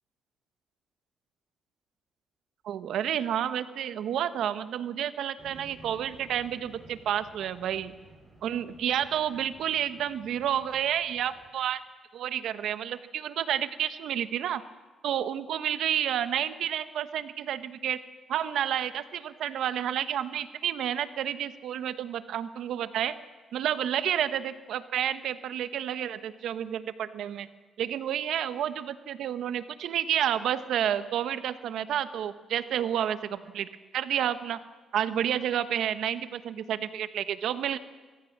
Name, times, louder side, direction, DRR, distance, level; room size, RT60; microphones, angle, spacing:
voice 1, 2.6-7.9 8.4-11.8 12.1-14.6 15.0-18.0 18.3-23.2 23.5-27.5 27.8-34.6 34.9-37.8, right 10 dB, 75° right, 12 dB, 1.1 m, -30 dB
sound 1, 5.4-11.5, right 2 dB, 35° right, 6.1 m, -54 dB
23.5 x 15.5 x 7.3 m, 1.3 s
cardioid pair, 90°, 0 cm